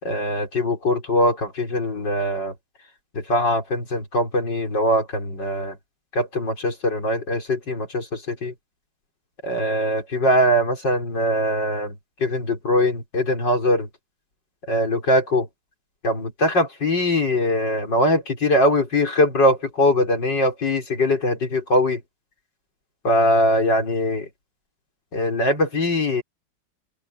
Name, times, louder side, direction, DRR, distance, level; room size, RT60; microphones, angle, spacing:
voice 1, 0.0-2.5 3.1-5.8 6.1-8.5 9.4-13.9 14.7-15.5 16.0-22.0 23.0-24.3 25.1-26.2, left 1 dB, 75° left, 6.0 m, -21 dB
open air
omnidirectional pair, 1.9 m